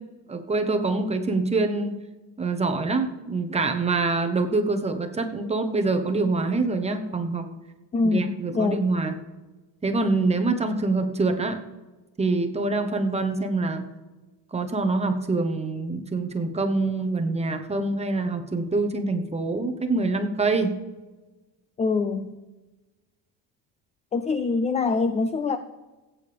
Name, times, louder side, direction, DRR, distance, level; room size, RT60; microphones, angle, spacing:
voice 1, 0.3-1.9 2.4-7.5 8.0-9.2 9.8-11.6 12.2-13.8 14.5-20.7, right 3 dB, 15° right, 5 dB, 1.0 m, -25 dB
voice 2, 7.9-8.9 21.8-22.4 24.1-25.6, left 4 dB, 20° left, 11 dB, 0.3 m, -24 dB
16.5 x 8.7 x 3.5 m, 1.2 s
cardioid pair, 135°, 41 cm